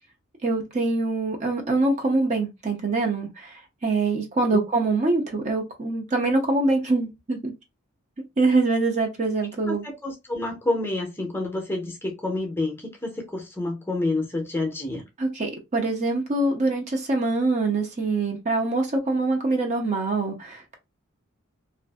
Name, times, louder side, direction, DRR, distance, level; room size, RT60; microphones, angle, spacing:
voice 1, 0.4-7.5 8.4-9.8 15.2-20.8, right 3 dB, 35° right, 0.6 m, -24 dB
voice 2, 9.6-15.0, left 2 dB, 10° left, 0.6 m, -28 dB
2.5 x 2.4 x 2.2 m
head